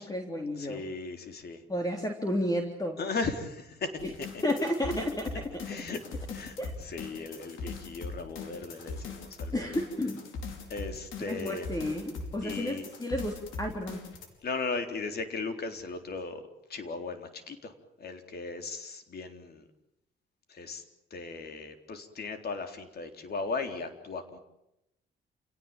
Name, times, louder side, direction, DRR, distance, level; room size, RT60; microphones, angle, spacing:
voice 1, 0.0-0.8 1.7-3.0 4.4-5.7 6.6-6.7 9.5-10.2 11.3-14.0, left 1 dB, 20° left, 3 dB, 3.6 m, -32 dB
voice 2, 0.6-1.6 3.0-4.3 5.7-6.0 6.3-9.8 10.7-11.7 12.4-12.9 14.4-16.4 16.7-19.6 20.5-20.8 21.1-24.4, left 4 dB, 55° left, 7 dB, 3.9 m, -37 dB
sound 1, 4.0-14.3, left 4 dB, 80° left, 5.0 m, -41 dB
29.0 x 18.0 x 9.1 m, 0.86 s
cardioid pair, 90°, 20 cm